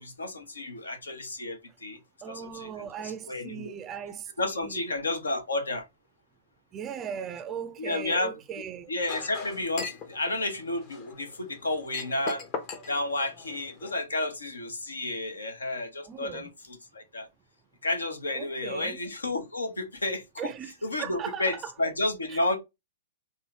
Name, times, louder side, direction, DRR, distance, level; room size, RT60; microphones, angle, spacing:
voice 1, 0.0-2.0 2.3-3.7 4.4-5.8 7.8-8.3 8.9-12.4 12.9-17.3 17.8-20.5 20.8-22.6, left 2 dB, 75° left, 1.0 m, -31 dB
voice 2, 2.2-4.3 4.6-4.8 6.7-8.9 16.0-16.5 18.3-19.0 20.4-20.7 21.0-21.6 22.3-22.4, right 8 dB, 25° right, 0.4 m, -38 dB
Chink clink, 9.0-14.0, left 4 dB, 35° left, 0.8 m, -40 dB
3.7 x 2.6 x 3.2 m
figure-of-eight pair, 110°, 0 cm